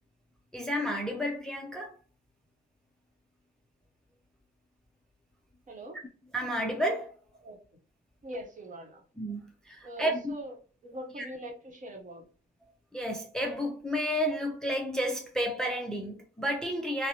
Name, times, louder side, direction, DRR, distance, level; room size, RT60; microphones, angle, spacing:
voice 1, 0.5-1.9 6.3-7.2 9.2-10.3 11.2-11.3 12.9-17.1, equal, 5° left, 0.4 m, -31 dB
voice 2, 5.7-6.0 7.4-7.6 8.2-9.0 9.8-10.5 10.8-12.2, right 1 dB, 40° right, 0.9 m, -42 dB
2.6 x 2.0 x 2.8 m
cardioid pair, 90°, 20 cm